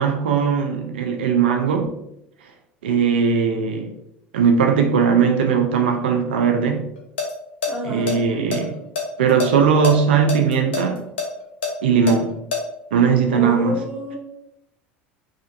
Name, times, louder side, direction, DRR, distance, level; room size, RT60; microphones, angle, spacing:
voice 1, 0.0-1.9 2.8-3.9 4.3-6.9 7.8-8.8 9.2-11.0 11.8-12.3 12.9-13.8, right 6 dB, 80° right, 4 dB, 0.4 m, -19 dB
sound 1, 7.0-7.3 7.6-7.7 8.1-9.5 9.8-9.9 10.3-12.6, left 5 dB, 80° left, 0.7 m, -25 dB
voice 2, 7.7-8.2 13.3-14.2, left 1 dB, 5° right, -4 dB, 1.2 m, -29 dB
3.2 x 2.4 x 2.6 m, 0.80 s
hypercardioid pair, 80°, 6 cm